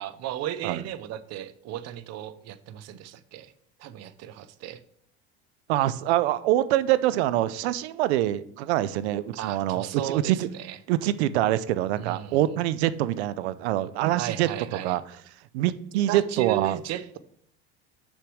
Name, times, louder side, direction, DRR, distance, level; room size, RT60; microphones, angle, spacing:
voice 1, 0.0-3.5 3.8-4.8 9.4-10.8 12.0-12.6 14.2-15.0 16.1-17.2, right 12 dB, 55° right, 0.8 m, -35 dB
voice 2, 5.7-10.5 10.9-14.5 14.8-15.0 15.5-16.8, right 14 dB, 90° right, 0.7 m, -25 dB
6.7 x 6.3 x 6.3 m
supercardioid pair, 110°, 32 cm